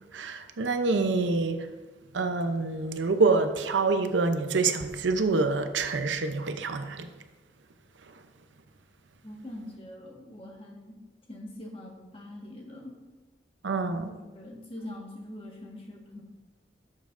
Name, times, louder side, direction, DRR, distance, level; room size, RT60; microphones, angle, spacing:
voice 1, 0.1-1.7 2.1-7.1 13.6-14.1, right 3 dB, 90° right, 9 dB, 0.7 m, -26 dB
voice 2, 9.2-11.0 11.3-12.9 14.2-16.2, left 1 dB, 30° left, 0 dB, 1.4 m, -43 dB
11.0 x 7.5 x 2.6 m, 1.2 s
head